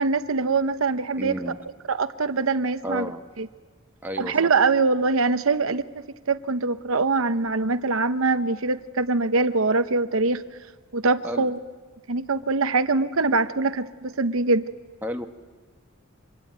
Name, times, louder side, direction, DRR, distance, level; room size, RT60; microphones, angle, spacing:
voice 1, 0.0-1.4 1.9-3.1 3.4-3.5 4.2-5.8 6.3-10.4 10.9-11.6 12.1-14.7, right 3 dB, 75° right, 11 dB, 0.8 m, -23 dB
voice 2, 1.2-1.6 2.8-3.2 4.0-4.4 11.2-11.5 15.0-15.3, equal, 10° right, 3 dB, 1.3 m, -31 dB
26.0 x 22.0 x 9.4 m, 1.4 s
head